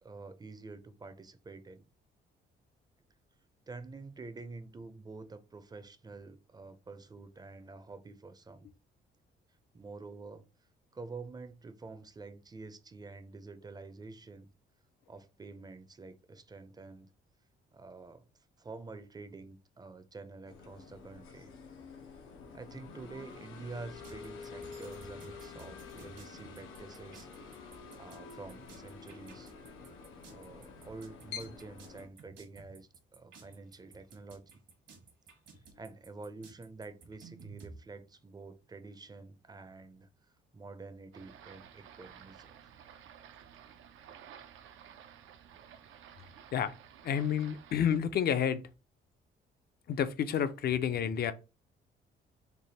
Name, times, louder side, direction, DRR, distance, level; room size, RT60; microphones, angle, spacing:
voice 1, 0.0-1.8 3.7-8.7 9.7-10.4 10.9-14.5 15.1-17.1 17.7-18.3 18.6-21.5 22.5-27.5 28.0-29.5 30.3-34.6 35.8-40.1 40.5-42.6, right 3 dB, 20° right, 0.5 m, -48 dB
sound 1, 20.5-32.1, left 5 dB, 85° left, 0.7 m, -48 dB
sound 2, 24.0-37.7, right 4 dB, 65° right, 1.1 m, -55 dB
sound 3, 41.1-48.0, right 9 dB, 85° right, 0.5 m, -54 dB
voice 2, 47.0-48.7 49.9-51.3, left 8 dB, 50° left, 0.5 m, -30 dB
3.4 x 2.1 x 4.0 m
cardioid pair, 90°, 20 cm